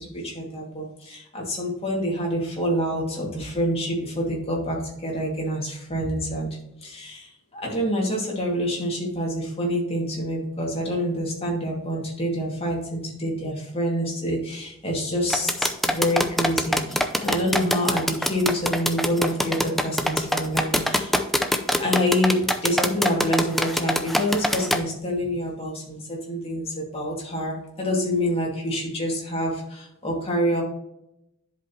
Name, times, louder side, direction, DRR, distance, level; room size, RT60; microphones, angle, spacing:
voice 1, 0.0-6.5 6.8-21.2 21.8-30.6, equal, 30° left, -2 dB, 2.5 m, -27 dB
sound 1, 15.3-24.8, equal, ahead, 0.5 m, -23 dB
11.0 x 5.1 x 3.1 m, 0.82 s
head